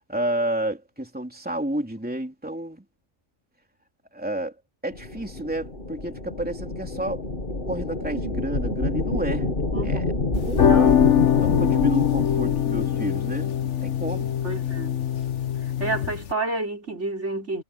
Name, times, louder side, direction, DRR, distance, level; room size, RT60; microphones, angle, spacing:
voice 1, 0.1-2.8 4.1-4.5 4.8-7.2 7.7-9.5 9.8-10.0 10.4-11.1 11.4-13.5 13.8-14.3, right 1 dB, 5° right, 3.3 m, -30 dB
sound 1, 4.9-13.0, left 2 dB, 50° left, 2.3 m, -28 dB
voice 2, 9.7-10.2 10.6-11.0 14.4-15.0 15.8-17.6, right 2 dB, 75° right, 5.6 m, -30 dB
sound 2, 10.3-16.3, left 9 dB, 80° left, 1.4 m, -22 dB
omnidirectional pair, 1.2 m